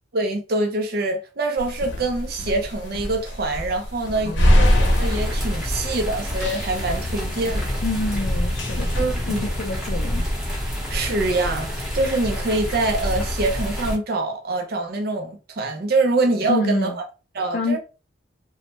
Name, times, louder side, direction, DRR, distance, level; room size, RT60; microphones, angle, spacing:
voice 1, 0.1-7.8 8.9-9.5 10.9-16.9 17.3-17.8, right 2 dB, 55° right, 0.5 m, -25 dB
sound 1, 1.6-9.1, equal, 75° left, 0.8 m, -24 dB
voice 2, 4.2-4.6 7.8-10.3 16.5-17.0 17.5-17.8, left 3 dB, 50° left, 0.4 m, -27 dB
sound 2, 4.6-14.0, equal, ahead, 0.8 m, -27 dB
3.0 x 2.1 x 3.0 m
head